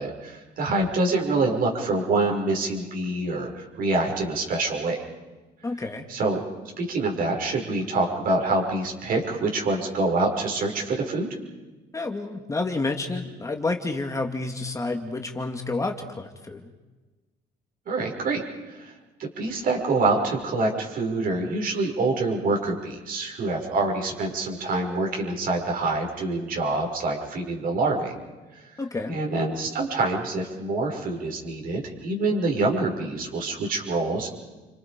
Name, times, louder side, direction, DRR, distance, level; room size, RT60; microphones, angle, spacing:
voice 1, 0.0-5.0 6.1-6.4 6.8-11.3 17.9-18.9 19.2-28.1 29.1-34.3, right 2 dB, 55° right, 1 dB, 6.3 m, -26 dB
voice 2, 5.6-6.1 11.9-16.7 28.8-29.2, left 3 dB, 20° left, 4 dB, 2.2 m, -29 dB
30.0 x 25.5 x 5.3 m, 1.2 s
cardioid pair, 110°, 17 cm